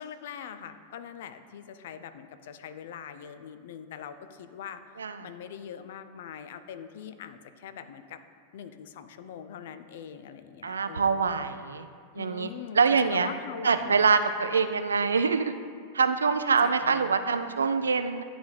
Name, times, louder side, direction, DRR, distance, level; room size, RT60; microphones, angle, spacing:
voice 1, 0.0-4.8 5.2-8.2 8.5-11.3 12.1-14.1 16.6-17.0, left 8 dB, 55° left, 10 dB, 0.3 m, -42 dB
voice 2, 10.6-11.9 12.2-12.5 12.7-13.3 13.6-15.5 15.9-18.2, right 5 dB, 70° right, 10 dB, 0.3 m, -24 dB
10.0 x 4.0 x 3.2 m, 2.1 s
figure-of-eight pair, 90°, 0 cm